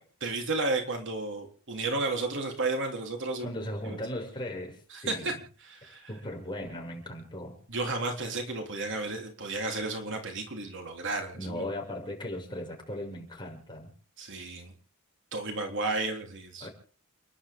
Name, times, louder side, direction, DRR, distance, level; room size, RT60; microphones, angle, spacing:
voice 1, 0.2-3.5 3.9-4.0 4.9-5.3 5.6-6.1 7.7-11.7 14.2-14.7 15.3-16.7, right 3 dB, 55° right, 3 dB, 3.5 m, -32 dB
voice 2, 3.4-5.4 6.1-7.6 11.3-13.9 16.6-16.7, left 1 dB, 20° left, 0 dB, 6.4 m, -37 dB
29.5 x 11.5 x 3.7 m, 0.42 s
head